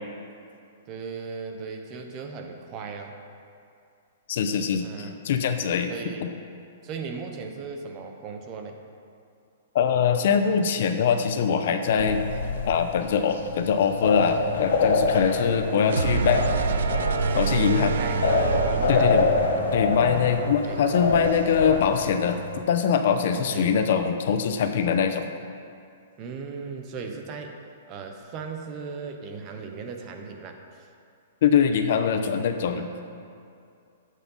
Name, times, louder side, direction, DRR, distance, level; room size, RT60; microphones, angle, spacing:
voice 1, 0.9-3.2 4.8-5.2 5.9-6.3 6.8-8.8 15.1-15.6 17.8-19.2 19.7-20.8 23.3-23.8 26.2-27.6 27.9-30.9 32.7-32.9, right 5 dB, 20° right, 4 dB, 0.9 m, -38 dB
voice 2, 4.3-5.9 6.2-6.3 9.7-12.2 12.7-16.5 17.3-18.0 18.9-19.3 19.7-22.4 22.7-25.3 31.4-32.9, left 7 dB, 45° left, 7 dB, 0.8 m, -23 dB
sound 1, 12.0-22.6, left 4 dB, 75° left, 1.5 m, -26 dB
sound 2, 15.8-21.7, right 6 dB, 85° right, 0.8 m, -28 dB
12.5 x 8.4 x 5.6 m, 2.5 s
hypercardioid pair, 175°, 0 cm